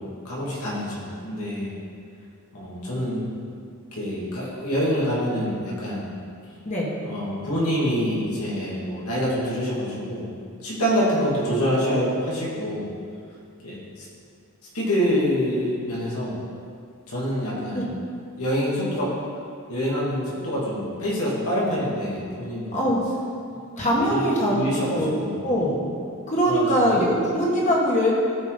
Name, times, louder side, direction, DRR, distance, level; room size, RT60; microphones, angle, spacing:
voice 1, 0.0-1.7 2.5-3.3 3.9-6.1 7.0-10.3 10.6-12.9 13.6-14.1 14.7-16.3 17.1-17.9 18.3-19.1 19.7-22.8 23.8-25.4 26.5-26.9, equal, 85° left, -6 dB, 2.3 m, -26 dB
voice 2, 23.8-24.6 24.9-25.8 26.3-28.1, equal, 35° left, -4 dB, 1.4 m, -22 dB
13.0 x 5.0 x 4.0 m, 2.3 s
head